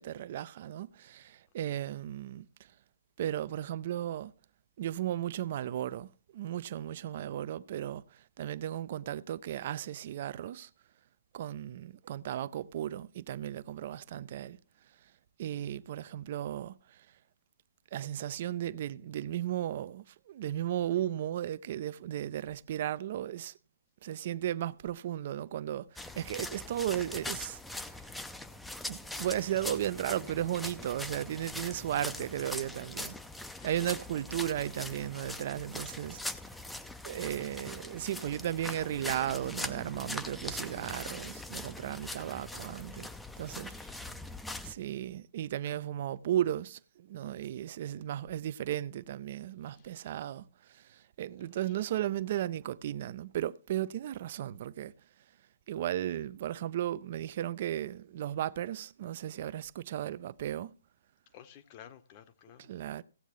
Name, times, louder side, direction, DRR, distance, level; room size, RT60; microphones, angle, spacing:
voice 1, 0.0-2.7 3.2-4.3 4.8-10.7 11.3-14.6 15.4-17.1 17.9-23.5 24.0-28.0 28.9-33.2 33.6-36.2 37.0-43.1 43.4-44.0 44.6-54.9 55.7-60.7 62.7-63.0, right 11 dB, 45° right, 0.4 m, -35 dB
sound 1, 26.0-44.7, left 2 dB, 5° left, 0.5 m, -42 dB
voice 2, 32.4-32.9 33.5-33.8 43.6-44.0 44.4-44.8 49.7-50.0 51.3-51.9 61.3-62.7, left 10 dB, 35° left, 1.0 m, -56 dB
16.5 x 8.0 x 3.0 m
figure-of-eight pair, 125°, 0 cm